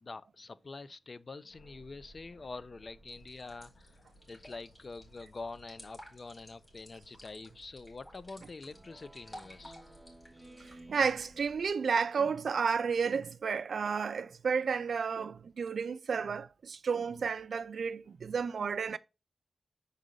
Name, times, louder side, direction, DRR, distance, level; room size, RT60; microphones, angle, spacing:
voice 1, 0.0-4.0 4.3-9.8, left 3 dB, 40° left, 0.4 m, -46 dB
sound 1, 1.5-11.7, right 1 dB, 85° left, 1.6 m, -60 dB
sound 2, 3.1-10.8, equal, 25° left, 2.0 m, -54 dB
Speech synthesizer, 8.7-12.2, right 1 dB, 10° right, 0.6 m, -56 dB
voice 2, 10.6-19.0, right 6 dB, 75° right, 0.3 m, -32 dB
6.3 x 3.9 x 3.7 m
wide cardioid pair, 145°, 0 cm